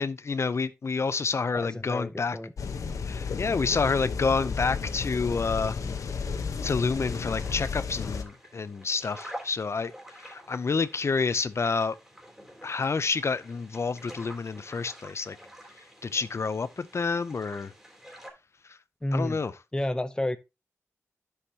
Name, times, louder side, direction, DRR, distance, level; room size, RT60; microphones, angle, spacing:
voice 1, 0.0-2.4 3.0-5.8 6.6-9.9 10.2-12.0 12.6-15.4 16.0-17.7 19.1-19.5, left 4 dB, 55° left, 0.5 m, -28 dB
voice 2, 1.5-2.5 19.0-19.4 19.7-20.4, left 1 dB, 15° left, 0.6 m, -30 dB
sound 1, 2.6-8.2, left 5 dB, 80° left, 0.9 m, -33 dB
sound 2, 6.9-18.3, equal, 10° right, 3.4 m, -48 dB
9.7 x 6.3 x 2.8 m
cardioid pair, 45°, 6 cm